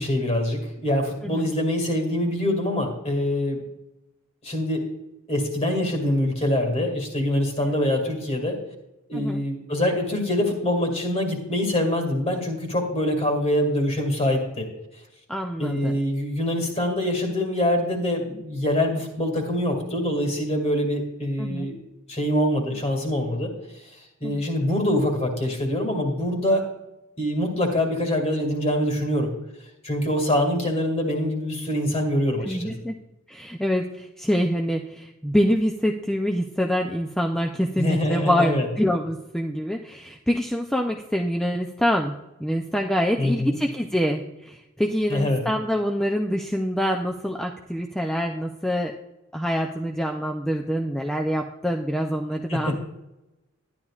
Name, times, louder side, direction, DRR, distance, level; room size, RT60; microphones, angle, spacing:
voice 1, 0.0-3.7 4.4-4.8 5.3-8.6 9.1-14.7 15.6-21.8 22.1-23.8 24.2-26.7 27.2-29.3 29.8-32.8 37.8-38.7 43.2-43.6 45.1-45.4 52.5-52.8, left 1 dB, 30° left, 2 dB, 2.2 m, -24 dB
voice 2, 15.3-16.0 21.4-21.7 24.2-24.4 32.4-32.9 33.3-42.1 42.4-48.9 49.3-52.8, equal, 5° left, 1 dB, 0.4 m, -25 dB
12.0 x 10.5 x 2.4 m, 0.94 s
head